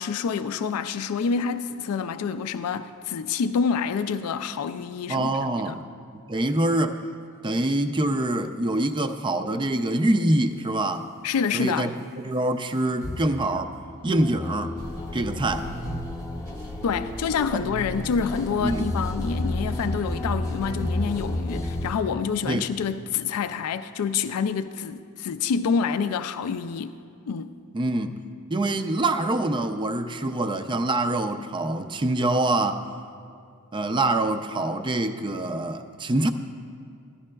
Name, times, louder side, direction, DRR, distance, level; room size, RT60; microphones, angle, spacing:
voice 1, 0.0-5.3 5.7-5.8 11.2-11.9 16.8-26.9 27.3-27.5, left 6 dB, 85° left, 0.4 m, -27 dB
voice 2, 5.1-5.9 6.3-7.0 7.4-11.1 11.5-11.9 12.2-13.7 14.0-14.7 15.1-15.7 17.5-17.7 18.6-18.9 22.4-22.7 27.7-28.2 28.5-32.8 33.7-36.3, right 1 dB, 20° right, 0.4 m, -25 dB
sound 1, 13.0-22.0, left 1 dB, 15° left, 0.7 m, -32 dB
sound 2, 14.8-21.9, equal, 90° right, 1.7 m, -37 dB
15.5 x 11.5 x 2.3 m
head